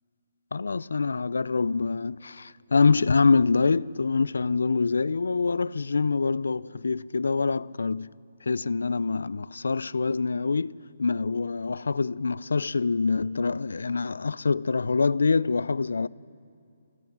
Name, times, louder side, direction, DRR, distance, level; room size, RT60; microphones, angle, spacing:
voice 1, 0.5-8.1 8.5-16.1, left 4 dB, 80° left, 0.4 m, -25 dB
28.0 x 14.5 x 7.3 m
hypercardioid pair, 145°, 0 cm